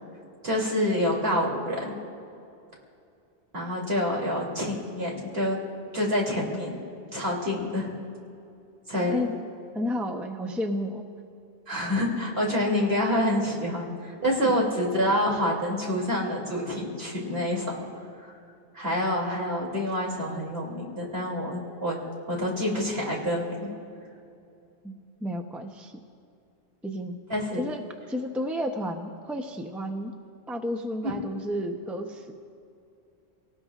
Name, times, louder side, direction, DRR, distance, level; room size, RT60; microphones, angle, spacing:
voice 1, 0.4-1.9 3.5-5.6 5.9-6.8 7.1-7.9 8.9-9.2 11.7-17.6 18.2-18.3 18.7-22.0 22.3-23.7 27.3-27.6 31.0-31.1, left 1 dB, 70° right, -2 dB, 3.2 m, -27 dB
voice 2, 9.7-11.0 24.8-25.0 25.2-26.0 26.8-27.2 27.6-27.8 28.1-30.1 30.5-32.3, equal, ahead, 3 dB, 0.7 m, -31 dB
28.0 x 18.5 x 2.5 m, 2.5 s
omnidirectional pair, 1.1 m